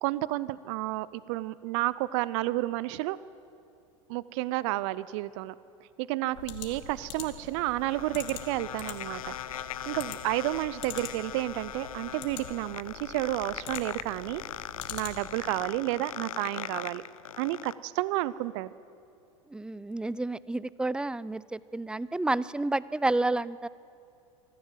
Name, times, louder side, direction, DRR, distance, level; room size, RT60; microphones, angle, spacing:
voice 1, 0.0-3.2 4.1-5.5 6.0-14.4 14.9-17.0 17.4-18.7, right 17 dB, 60° right, 18 dB, 0.6 m, -31 dB
sound 1, 6.3-15.5, left 8 dB, 65° left, 2.5 m, -45 dB
sound 2, 7.3-17.7, left 11 dB, 85° left, 0.6 m, -40 dB
voice 2, 19.5-23.7, right 2 dB, 5° right, 20 dB, 0.4 m, -30 dB
25.5 x 15.0 x 7.6 m, 2.6 s
hypercardioid pair, 95°, 17 cm